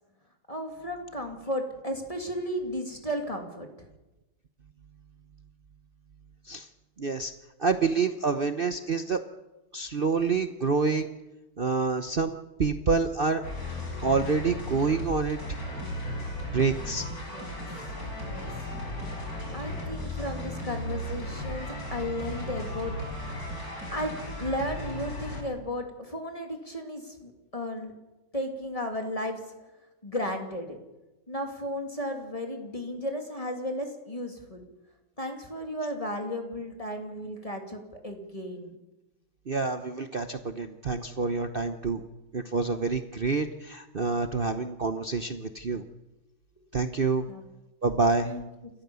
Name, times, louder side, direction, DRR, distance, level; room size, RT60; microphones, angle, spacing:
voice 1, 0.5-3.9 17.3-17.5 18.2-18.5 19.5-22.9 23.9-27.9 28.3-29.4 30.0-30.8 31.3-34.7 35.2-38.8 47.3-47.4 48.2-48.5, equal, 15° left, 3 dB, 2.6 m, -34 dB
voice 2, 7.0-7.3 7.6-9.2 9.7-11.1 11.6-13.4 14.0-15.4 16.5-17.1 39.5-42.0 42.3-45.8 46.7-47.3 47.8-48.3, right 4 dB, 60° right, 8 dB, 0.5 m, -27 dB
sound 1, 13.4-25.4, left 1 dB, 45° left, 5.8 m, -35 dB
28.5 x 14.5 x 7.0 m, 1.1 s
omnidirectional pair, 2.2 m